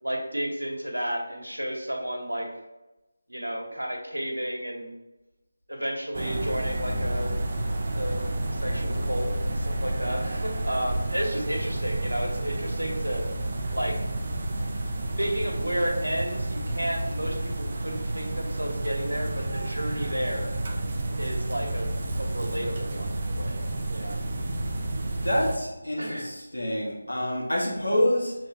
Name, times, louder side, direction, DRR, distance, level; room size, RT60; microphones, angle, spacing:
voice 1, 0.0-2.5 3.3-4.9 5.7-7.3 7.9-8.3 8.5-13.3 13.7-14.0 15.2-20.5 21.2-21.9 22.2-24.2 26.0-26.3, equal, 85° right, 1 dB, 1.3 m, -32 dB
sound 1, 6.1-25.6, right 1 dB, 35° right, 0.5 m, -30 dB
voice 2, 24.9-28.3, left 1 dB, 80° left, -3 dB, 1.6 m, -27 dB
5.4 x 3.5 x 2.8 m, 1.0 s
figure-of-eight pair, 160°, 0 cm